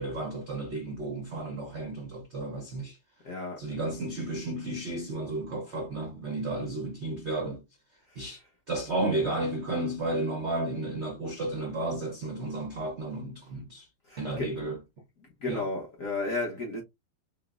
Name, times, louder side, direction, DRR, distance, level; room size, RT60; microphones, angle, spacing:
voice 1, 0.0-3.0 3.6-7.6 8.2-8.4 8.7-13.8 14.2-14.8 15.5-15.7, right 2 dB, 65° right, 0.6 m, -33 dB
voice 2, 3.2-3.6 14.1-14.5 15.4-16.8, left 2 dB, 55° left, 1.0 m, -33 dB
5.9 x 2.0 x 2.3 m
omnidirectional pair, 2.4 m